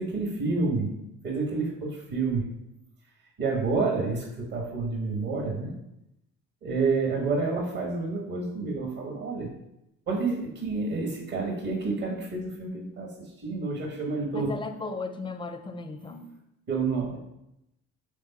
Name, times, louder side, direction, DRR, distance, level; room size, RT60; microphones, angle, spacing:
voice 1, 0.0-2.5 3.4-5.7 6.6-9.5 10.1-14.6 16.7-17.2, right 3 dB, 55° right, 1 dB, 1.3 m, -29 dB
voice 2, 14.3-16.3, left 3 dB, 10° left, 8 dB, 0.4 m, -36 dB
3.6 x 3.4 x 4.2 m, 0.85 s
figure-of-eight pair, 45°, 43 cm